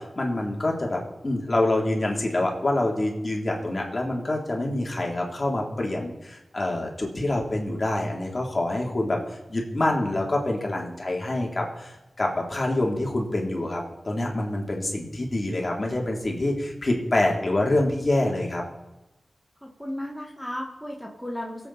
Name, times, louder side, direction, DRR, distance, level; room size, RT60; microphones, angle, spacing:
voice 1, 0.0-18.6, left 1 dB, 40° left, 0 dB, 3.3 m, -26 dB
voice 2, 19.6-21.7, left 1 dB, ahead, -1 dB, 2.0 m, -35 dB
22.0 x 8.4 x 4.3 m, 1.0 s
wide cardioid pair, 70°, 0 cm